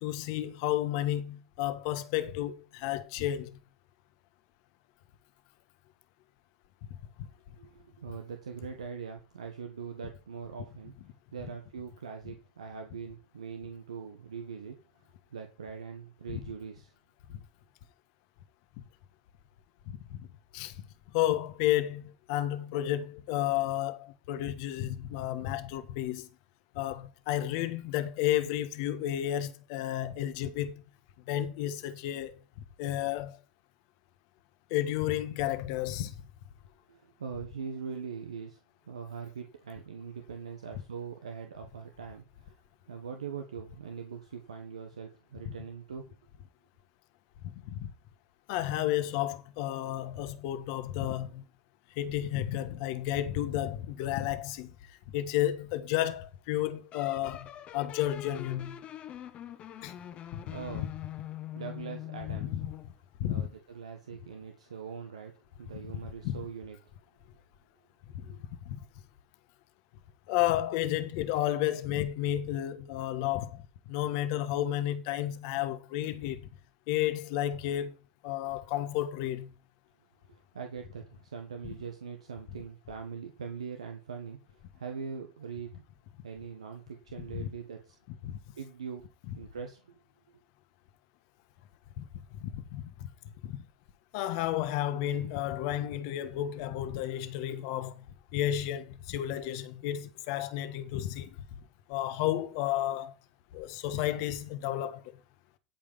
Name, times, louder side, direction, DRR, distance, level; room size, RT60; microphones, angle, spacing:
voice 1, 0.0-3.6 16.3-16.4 19.9-20.3 20.5-20.7 21.1-26.3 26.7-30.7 31.3-32.4 32.8-33.4 34.7-36.1 47.4-47.9 48.5-51.4 52.0-54.7 55.1-57.5 57.7-58.8 59.8-59.9 60.7-60.9 62.3-62.6 63.2-63.5 66.2-66.4 68.1-68.3 68.6-68.8 70.3-76.4 76.9-78.0 78.2-79.5 87.3-87.5 88.2-88.4 92.0-92.1 92.4-93.1 93.4-93.6 94.1-98.0 98.3-101.3 101.9-103.1 103.5-105.2, left 13 dB, 60° left, 1.4 m, -32 dB
voice 2, 7.5-10.9 11.3-16.9 36.9-38.6 38.9-42.6 42.9-46.1 60.5-60.9 61.5-62.5 63.3-66.8 68.3-68.4 80.3-85.8 86.2-88.0 88.6-89.0 89.3-89.9, right 6 dB, 85° right, 1.4 m, -42 dB
sound 1, 56.9-62.9, left 12 dB, 40° left, 1.3 m, -43 dB
12.0 x 5.2 x 5.6 m
hypercardioid pair, 85°, 3 cm